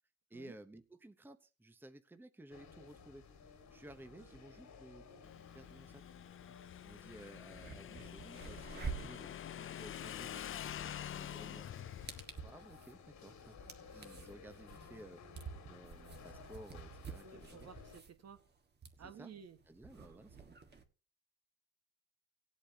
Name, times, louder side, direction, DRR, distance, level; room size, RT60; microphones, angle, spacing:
voice 1, 0.3-3.2 3.7-5.1 5.5-6.0 6.8-10.4 11.1-11.7 12.4-15.2 15.7-17.7 19.0-19.3 19.7-20.6, right 1 dB, 5° right, 9 dB, 0.9 m, -55 dB
sound 1, 2.5-18.0, left 5 dB, 70° left, 2.1 m, -57 dB
Motorcycle / Engine, 5.2-12.2, left 10 dB, 45° left, 0.5 m, -47 dB
sound 2, 7.0-7.1 7.5-20.8, right 5 dB, 35° right, 1.6 m, -50 dB
voice 2, 17.2-18.4 19.0-19.6 20.0-20.3, right 6 dB, 60° right, 8 dB, 1.5 m, -54 dB
18.0 x 8.3 x 2.8 m, 0.32 s
cardioid pair, 90°, 30 cm